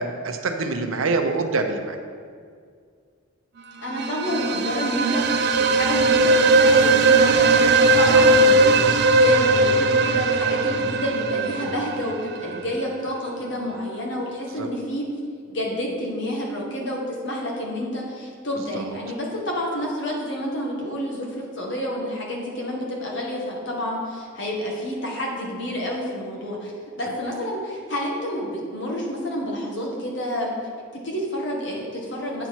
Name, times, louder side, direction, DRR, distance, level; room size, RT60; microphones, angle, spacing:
voice 1, 0.0-2.0 14.5-14.7 18.7-18.9, right 3 dB, 80° right, 6 dB, 0.7 m, -25 dB
voice 2, 3.8-15.0 15.5-26.7 27.0-30.5 30.9-32.5, equal, 60° left, -2 dB, 1.6 m, -29 dB
sound 1, 3.8-12.6, right 2 dB, 50° right, 0.4 m, -18 dB
8.9 x 5.7 x 4.6 m, 2.1 s
head